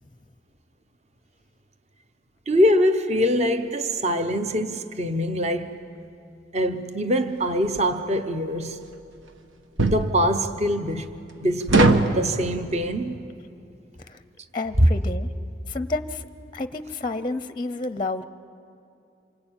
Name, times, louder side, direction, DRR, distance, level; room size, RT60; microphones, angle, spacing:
voice 1, 2.5-5.8 6.5-8.8 9.8-11.1 11.4-13.2 14.8-14.9, equal, 35° right, 9 dB, 1.0 m, -23 dB
sound 1, 7.6-7.9 9.8-10.1 11.7-12.2, right 2 dB, 80° right, 1.4 m, -18 dB
voice 2, 14.5-15.3 15.7-16.2 16.5-18.2, left 3 dB, 25° left, 12 dB, 0.6 m, -30 dB
27.0 x 24.5 x 9.0 m, 2.7 s
head